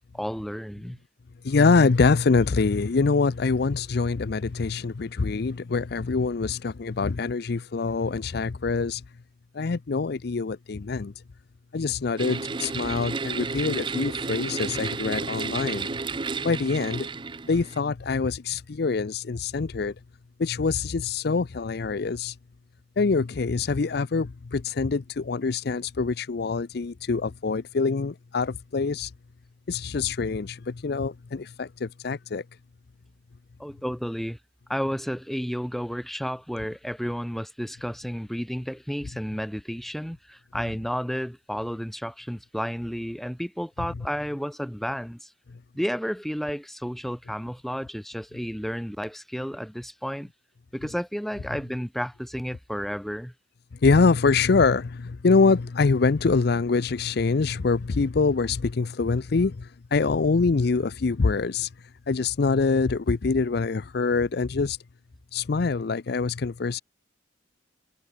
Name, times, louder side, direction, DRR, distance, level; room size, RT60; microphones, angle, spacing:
voice 1, 0.1-1.0 33.6-34.4 34.7-45.3 45.7-50.3 50.7-53.3, equal, ahead, 2.1 m, -32 dB
voice 2, 1.4-9.0 9.5-11.1 11.7-15.9 16.4-17.1 17.5-19.9 20.4-22.4 23.0-29.1 29.7-32.4 53.8-61.7 62.1-64.8 65.3-66.8, left 4 dB, 55° left, 0.5 m, -24 dB
sound 1, 12.2-17.8, right 4 dB, 25° right, 0.5 m, -32 dB
head